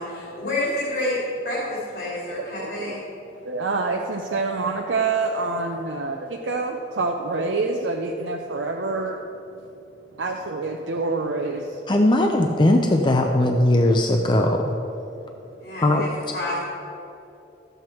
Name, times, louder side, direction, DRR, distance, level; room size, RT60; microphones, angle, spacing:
voice 1, 0.0-3.0 15.6-16.6, left 1 dB, 65° left, -8 dB, 2.6 m, -29 dB
voice 2, 2.6-2.9 3.4-9.2 10.2-11.8, right 3 dB, 90° right, 1 dB, 0.6 m, -26 dB
voice 3, 11.9-14.8 15.8-16.0, left 1 dB, 25° left, 3 dB, 0.5 m, -19 dB
13.0 x 7.9 x 4.5 m, 2.8 s
head